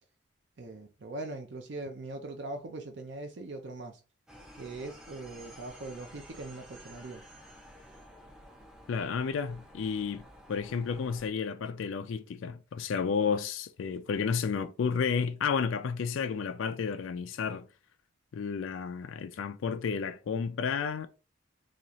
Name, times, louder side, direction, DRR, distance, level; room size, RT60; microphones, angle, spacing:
voice 1, 0.6-4.0 4.5-7.2, right 2 dB, 60° right, 0.5 m, -41 dB
sound 1, 4.3-11.3, equal, 5° right, 0.5 m, -52 dB
voice 2, 8.9-10.2 10.5-17.7 18.3-21.1, left 6 dB, 75° left, 0.4 m, -31 dB
4.0 x 2.4 x 2.9 m
head